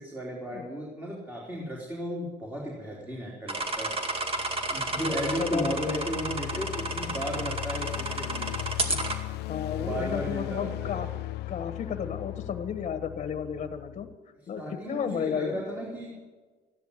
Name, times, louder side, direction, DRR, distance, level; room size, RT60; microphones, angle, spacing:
voice 1, 0.0-3.9 4.7-8.5 8.9-9.0 9.8-11.1 14.6-16.4, equal, 10° right, -3 dB, 3.6 m, -35 dB
sound 1, 3.5-9.1, right 2 dB, 35° right, 2.3 m, -31 dB
sound 2, 4.0-14.2, left 18 dB, 75° left, 0.4 m, -37 dB
voice 2, 5.0-6.1 9.5-11.1 11.5-14.1 14.5-14.6 14.9-15.6, left 7 dB, 40° left, 8 dB, 1.4 m, -33 dB
14.5 x 10.5 x 8.3 m, 1.4 s
cardioid pair, 110°, 17 cm